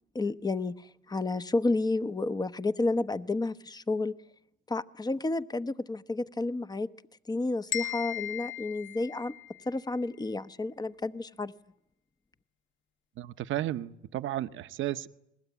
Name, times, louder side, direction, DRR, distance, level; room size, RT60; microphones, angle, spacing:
voice 1, 0.1-4.2 4.7-6.9 7.3-9.3 9.7-11.5, left 2 dB, 20° left, 12 dB, 0.9 m, -31 dB
Hand Bells High-C Single, 7.7-9.7, left 13 dB, 70° left, 1.2 m, -37 dB
voice 2, 13.2-15.1, right 13 dB, 80° right, 11 dB, 1.0 m, -33 dB
29.5 x 20.5 x 8.3 m, 0.83 s
cardioid pair, 90°, 20 cm